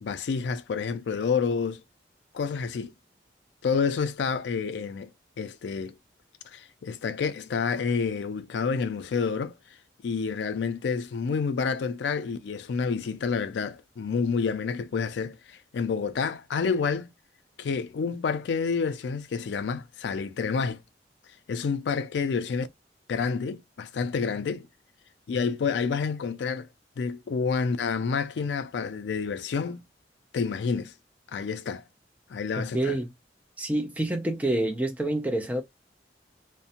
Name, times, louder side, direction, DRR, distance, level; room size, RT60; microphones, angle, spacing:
voice 1, 0.0-1.8 2.3-2.9 3.6-5.1 5.4-6.0 6.5-9.5 10.0-17.1 17.6-20.8 21.5-22.7 23.1-24.7 25.3-26.7 27.0-29.8 30.3-30.9 31.3-31.8 32.3-33.0, left 5 dB, 75° left, 0.3 m, -29 dB
voice 2, 32.7-33.1 33.6-35.6, right 1 dB, 10° right, 0.4 m, -27 dB
2.5 x 2.1 x 2.8 m
head